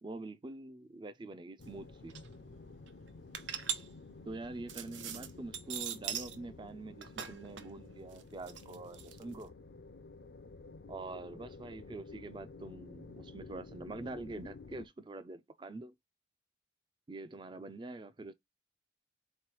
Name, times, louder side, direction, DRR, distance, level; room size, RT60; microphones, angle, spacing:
voice 1, 0.0-2.2 4.2-9.5 10.9-15.9 17.1-18.3, right 2 dB, 25° right, 0.3 m, -45 dB
sound 1, 1.6-14.9, left 3 dB, 60° left, 0.4 m, -52 dB
sound 2, 1.6-1.7 1.9-2.3 2.8-6.4 6.7-9.4, right 8 dB, 90° right, 0.6 m, -41 dB
4.1 x 3.1 x 3.0 m
head